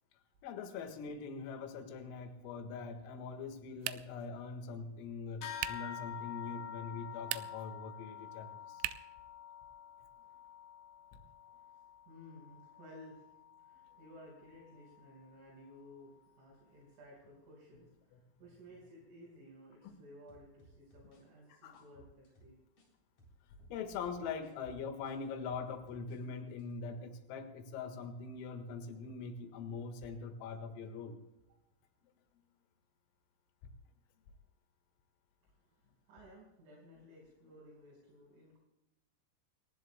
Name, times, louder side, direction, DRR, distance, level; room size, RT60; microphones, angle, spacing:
voice 1, 0.4-8.8 11.1-11.2 18.1-18.2 19.8-19.9 21.5-21.8 23.7-31.2, left 5 dB, 80° left, 6 dB, 4.2 m, -43 dB
sound 1, 3.8-4.3 5.6-5.9 7.2-7.7 8.8-9.2, right 17 dB, 85° right, 3.2 m, -39 dB
sound 2, 5.4-15.2, left 9 dB, 60° left, 5.3 m, -49 dB
voice 2, 12.1-13.2 13.6-22.5 35.7-35.8 36.1-38.6, equal, 65° right, -5 dB, 7.3 m, -56 dB
sound 3, 20.3-22.9 23.2-26.2 26.5-26.7, right 2 dB, 35° left, 4.5 m, -63 dB
29.5 x 15.5 x 2.2 m, 0.95 s
omnidirectional pair, 6.0 m